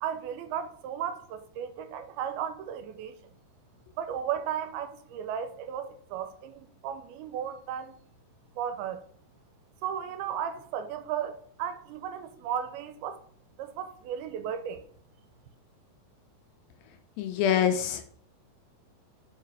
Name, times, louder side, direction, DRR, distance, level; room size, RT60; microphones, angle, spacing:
voice 1, 0.0-3.1 4.0-7.9 8.6-9.0 9.8-13.2 13.6-14.8, right 9 dB, 80° right, 2.4 m, -35 dB
voice 2, 17.2-18.1, left 9 dB, 80° left, 2.2 m, -25 dB
5.7 x 4.9 x 4.6 m
omnidirectional pair, 4.5 m